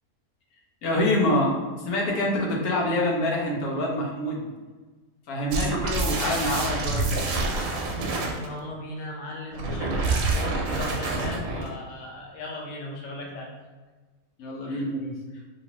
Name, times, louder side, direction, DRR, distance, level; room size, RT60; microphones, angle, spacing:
voice 1, 0.8-4.5 5.3-7.1 14.4-15.2, left 1 dB, 80° left, -2 dB, 1.2 m, -26 dB
sound 1, 5.5-8.5 9.5-11.7, right 2 dB, 75° right, 1.0 m, -27 dB
voice 2, 8.1-13.5 14.7-14.9 15.3-15.4, left 1 dB, 50° left, -2 dB, 0.5 m, -37 dB
3.0 x 2.6 x 2.8 m, 1.3 s
omnidirectional pair, 1.6 m